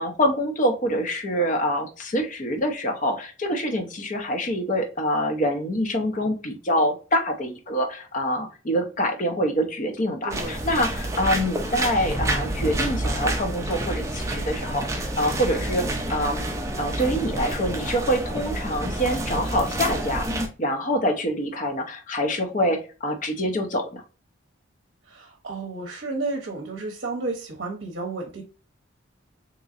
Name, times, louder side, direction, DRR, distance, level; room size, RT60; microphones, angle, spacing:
voice 1, 0.0-16.4 16.8-20.3 20.6-24.0, equal, 40° left, 4 dB, 0.6 m, -25 dB
voice 2, 10.2-10.7 25.0-28.4, right 3 dB, 55° right, 1 dB, 0.7 m, -32 dB
sound 1, 10.3-20.5, right 1 dB, 15° right, 0.5 m, -28 dB
3.8 x 3.0 x 2.4 m, 0.34 s
head